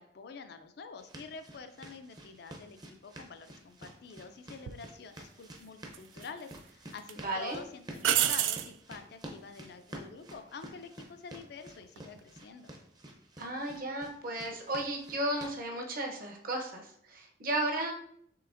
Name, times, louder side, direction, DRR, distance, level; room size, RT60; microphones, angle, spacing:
voice 1, 0.0-12.7, left 4 dB, 60° left, 8 dB, 0.4 m, -47 dB
sound 1, 1.0-15.6, right 1 dB, 20° right, 0.6 m, -50 dB
sound 2, 4.7-4.8 5.9-6.6 7.0-7.1 8.0-8.7 11.8-12.2, right 12 dB, 85° right, 0.3 m, -29 dB
voice 2, 7.2-7.6 13.4-17.9, right 1 dB, 50° right, 2 dB, 0.8 m, -34 dB
5.7 x 3.4 x 2.5 m, 0.68 s
head